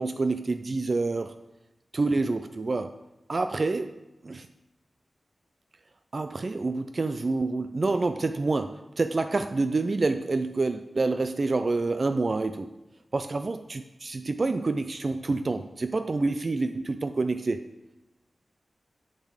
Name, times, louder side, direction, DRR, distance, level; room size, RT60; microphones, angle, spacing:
voice 1, 0.0-1.3 1.9-2.9 3.3-3.9 4.2-4.5 6.1-12.7 13.1-17.7, right 3 dB, 50° right, 9 dB, 0.3 m, -27 dB
6.7 x 6.6 x 4.8 m, 0.98 s
wide cardioid pair, 95°, 0 cm